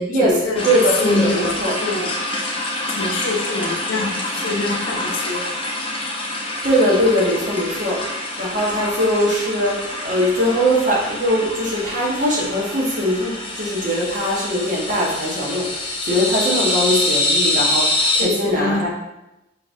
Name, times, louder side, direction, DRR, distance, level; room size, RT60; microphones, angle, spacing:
voice 1, 0.0-0.7 1.0-2.1 2.9-5.5 18.1-18.9, left 2 dB, 75° left, 1 dB, 0.7 m, -25 dB
sound 1, 0.6-18.2, left 1 dB, 25° left, 0.7 m, -25 dB
voice 2, 0.6-1.8 6.6-8.0 8.4-18.9, equal, 40° right, -3 dB, 1.1 m, -21 dB
5.0 x 3.8 x 2.6 m, 0.93 s
head